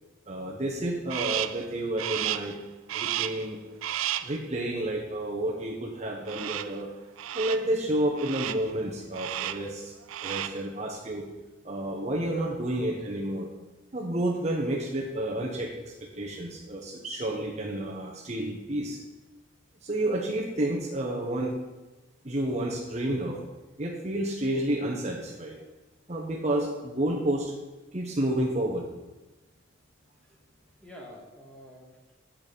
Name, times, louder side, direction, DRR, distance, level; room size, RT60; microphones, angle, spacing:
voice 1, 0.3-2.5 2.9-3.6 4.2-6.9 7.3-9.9 10.2-11.2 11.6-13.5 13.9-19.0 19.8-21.5 22.2-23.4 23.8-25.6 26.1-27.5 27.9-28.8, right 1 dB, 35° right, -1 dB, 1.0 m, -30 dB
Crow, 1.1-1.7 2.0-2.6 2.9-3.5 3.8-4.4 6.3-6.8 7.2-7.7 8.2-8.7 9.1-9.7 10.0-10.7, right 12 dB, 85° right, 0.4 m, -33 dB
voice 2, 30.2-32.1, equal, 5° left, -2 dB, 1.8 m, -49 dB
9.0 x 7.3 x 5.3 m, 1.1 s
head